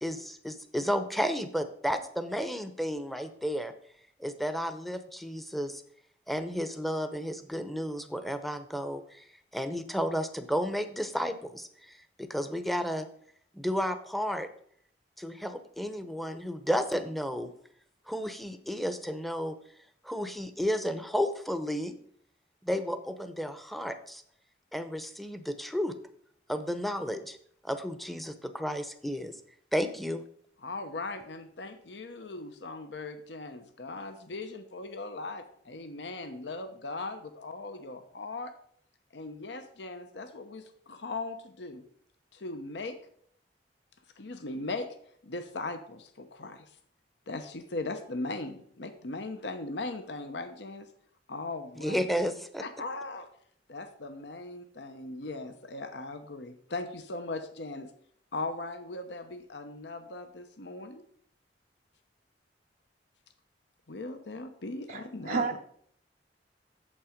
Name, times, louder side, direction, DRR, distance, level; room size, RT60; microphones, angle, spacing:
voice 1, 0.0-3.7 4.2-5.8 6.3-9.2 9.5-13.1 13.5-14.5 15.2-17.5 18.1-19.6 20.0-21.9 22.6-24.2 24.7-26.0 26.5-27.4 27.6-29.4 29.7-30.2 51.8-52.7, equal, ahead, 9 dB, 0.7 m, -32 dB
voice 2, 30.6-38.5 39.1-41.8 42.3-43.0 44.2-44.9 45.2-46.6 47.3-50.9 51.3-52.0 52.6-53.3 53.7-57.9 58.3-61.1 63.9-65.6, left 2 dB, 70° left, 9 dB, 0.9 m, -39 dB
voice 3, 64.9-65.6, right 5 dB, 50° right, 3 dB, 0.5 m, -32 dB
8.7 x 7.4 x 5.1 m, 0.63 s
head